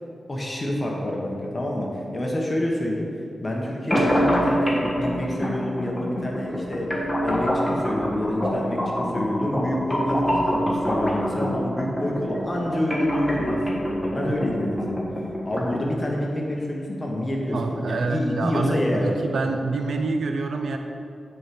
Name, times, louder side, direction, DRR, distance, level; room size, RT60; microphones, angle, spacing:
voice 1, 0.3-3.1 3.4-6.9 7.2-15.0 15.4-19.1, left 1 dB, 30° left, -2 dB, 1.3 m, -27 dB
sound 1, 3.9-15.9, equal, 10° left, 1.6 m, -26 dB
voice 2, 17.5-20.8, right 3 dB, 85° right, 5 dB, 0.7 m, -26 dB
9.6 x 4.8 x 5.2 m, 2.4 s
wide cardioid pair, 115°, 0 cm